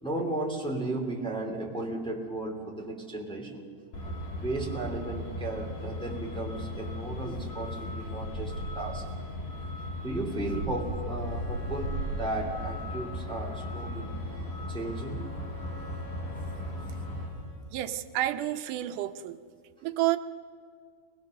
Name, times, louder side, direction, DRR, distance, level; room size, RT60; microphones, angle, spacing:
voice 1, 0.0-3.7 4.4-9.1 10.0-14.1 14.7-15.3, right 2 dB, ahead, -1 dB, 2.5 m, -35 dB
Truck, 3.9-17.3, left 1 dB, 85° left, 5.3 m, -36 dB
Bowed string instrument, 11.2-17.9, equal, 50° left, 4.5 m, -51 dB
voice 2, 17.7-19.4 19.8-20.2, right 14 dB, 90° right, 9 dB, 2.4 m, -29 dB
22.5 x 21.0 x 6.6 m, 2.1 s
omnidirectional pair, 3.6 m